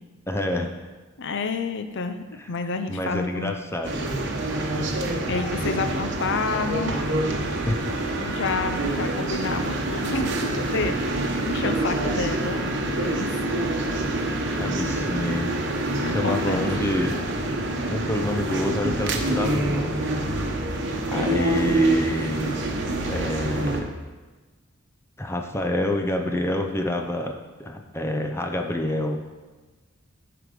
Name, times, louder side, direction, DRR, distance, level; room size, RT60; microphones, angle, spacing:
voice 1, 0.3-0.7 2.4-2.5 2.9-4.2 7.6-7.8 14.6-15.5 16.1-17.2 17.9-20.2 21.1-22.7 23.0-23.9 25.2-29.4, left 1 dB, 10° left, 3 dB, 0.6 m, -28 dB
voice 2, 1.2-3.5 5.3-7.0 7.9-10.3 10.7-11.1 11.4-13.3 16.0-16.7 21.1-21.8, left 4 dB, 60° left, 9 dB, 0.6 m, -29 dB
sound 1, 3.8-23.8, right 1 dB, 60° right, 1.0 m, -26 dB
9.5 x 4.9 x 5.1 m, 1.3 s
head